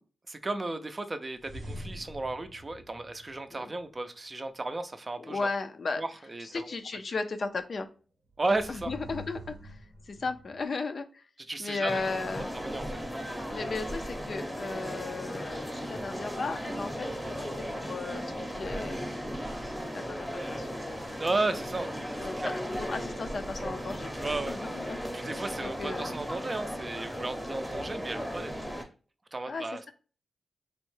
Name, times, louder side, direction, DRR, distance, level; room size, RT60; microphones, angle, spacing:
voice 1, 0.3-5.5 6.0-6.7 8.4-8.9 11.5-12.0 12.5-12.9 21.2-21.9 22.4-22.6 24.2-24.6 25.2-28.6 29.3-29.8, right 2 dB, 35° right, 0.4 m, -34 dB
sound 1, 1.4-3.8 8.3-10.6, equal, 85° right, 0.6 m, -45 dB
voice 2, 5.2-6.0 6.4-7.9 8.7-11.3 11.6-12.5 13.5-17.1 17.4-21.2 22.2-25.0 25.6-26.2 29.5-29.9, left 3 dB, 60° left, 0.4 m, -36 dB
sound 2, 11.9-28.8, equal, 10° left, 0.7 m, -36 dB
3.5 x 2.1 x 3.1 m
cardioid pair, 70°, 0 cm